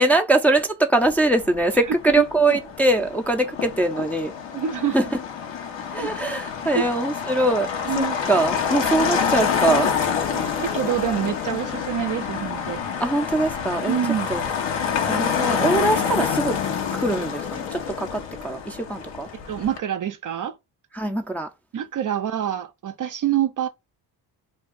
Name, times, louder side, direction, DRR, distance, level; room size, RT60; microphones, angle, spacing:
voice 1, 0.0-4.3 4.9-5.0 5.9-7.7 8.0-9.9 13.0-14.0 14.3-14.4 15.0-16.6 16.9-19.3 20.9-21.5, right 2 dB, 5° left, 0.5 m, -22 dB
Motor vehicle (road), 1.0-19.8, left 7 dB, 65° left, 1.1 m, -27 dB
voice 2, 2.2-2.6 4.5-5.0 6.0-6.1 6.7-6.8 7.8-8.1 10.3-12.8 13.9-14.3 16.2-16.3 19.5-20.6 21.7-23.7, right 10 dB, 40° right, 0.5 m, -26 dB
2.7 x 2.3 x 3.6 m
supercardioid pair, 70°, 47 cm